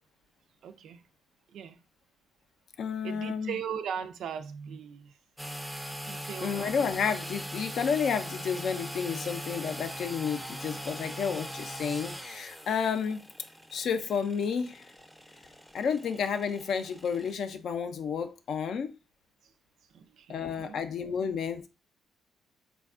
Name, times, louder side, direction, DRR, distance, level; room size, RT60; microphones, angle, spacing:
voice 1, 0.6-1.0 1.5-1.8 3.0-5.1 5.9-6.9 19.4-19.5 19.9-20.8, right 7 dB, 70° right, 0.3 m, -39 dB
voice 2, 2.8-3.5 6.4-13.3 13.7-14.9 15.7-18.9 20.3-21.7, left 6 dB, 65° left, 0.4 m, -31 dB
sound 1, 5.4-17.3, equal, ahead, 0.4 m, -41 dB
3.3 x 2.2 x 2.4 m
cardioid pair, 90°, 0 cm